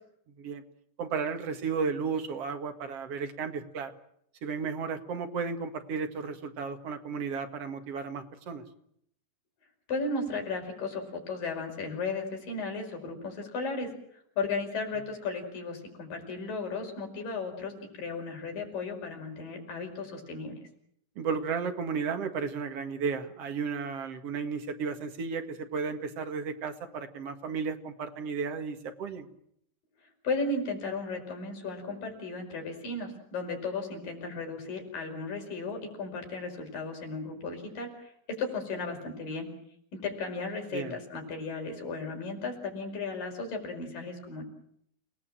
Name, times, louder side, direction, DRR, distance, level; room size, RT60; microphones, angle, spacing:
voice 1, 1.0-3.9 4.4-8.6 21.2-29.3 40.7-41.0, right 5 dB, 50° right, 6 dB, 2.6 m, -34 dB
voice 2, 9.9-13.9 14.4-20.6 30.2-39.5 39.9-44.4, left 3 dB, 80° left, 3 dB, 7.1 m, -35 dB
29.0 x 19.0 x 7.6 m, 0.70 s
omnidirectional pair, 3.9 m